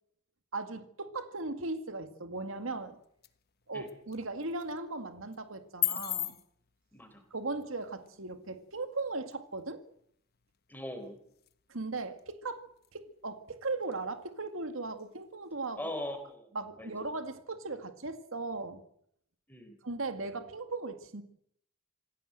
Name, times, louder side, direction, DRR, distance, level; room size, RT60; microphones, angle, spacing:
voice 1, 0.5-3.0 3.7-6.4 7.3-9.8 11.7-15.9 16.5-18.8 19.8-21.2, right 3 dB, 80° right, 2.0 m, -38 dB
sound 1, 2.3-16.4, left 15 dB, 50° left, 1.2 m, -44 dB
voice 2, 6.9-7.2 10.7-11.2 15.8-16.5 16.8-16.9 19.5-19.7, left 1 dB, 10° left, 4.3 m, -40 dB
27.0 x 16.5 x 7.8 m
head